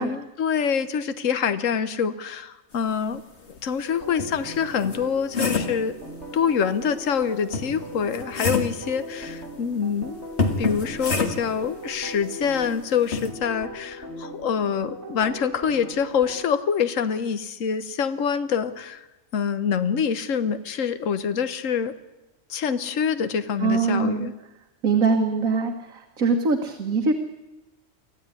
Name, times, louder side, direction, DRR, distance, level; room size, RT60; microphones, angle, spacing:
voice 1, 0.0-3.2 3.6-5.9 6.3-10.2 10.6-19.0 19.3-21.9 22.5-24.3, left 7 dB, 70° left, 12 dB, 1.4 m, -25 dB
sound 1, 3.6-3.7 4.2-5.8 7.5-8.8 10.4-11.6 13.1-13.3, left 4 dB, 55° left, 2.2 m, -27 dB
sound 2, 3.8-16.4, equal, 55° right, 5.6 m, -39 dB
voice 2, 23.6-24.3 24.8-27.1, right 4 dB, 80° right, 4 dB, 1.9 m, -23 dB
25.0 x 15.0 x 9.7 m, 1.0 s
omnidirectional pair, 1.4 m